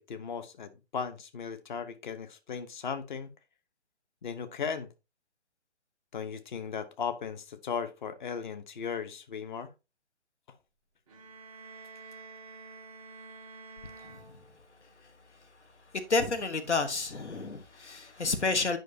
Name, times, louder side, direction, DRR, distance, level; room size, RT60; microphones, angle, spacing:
voice 1, 0.0-3.3 4.2-4.9 6.1-9.7, left 6 dB, 45° left, 0.9 m, -37 dB
sound 1, 11.1-14.9, right 4 dB, 5° left, 0.4 m, -49 dB
voice 2, 16.1-18.8, left 3 dB, 85° left, 1.2 m, -29 dB
9.1 x 5.2 x 2.7 m
figure-of-eight pair, 145°, 34 cm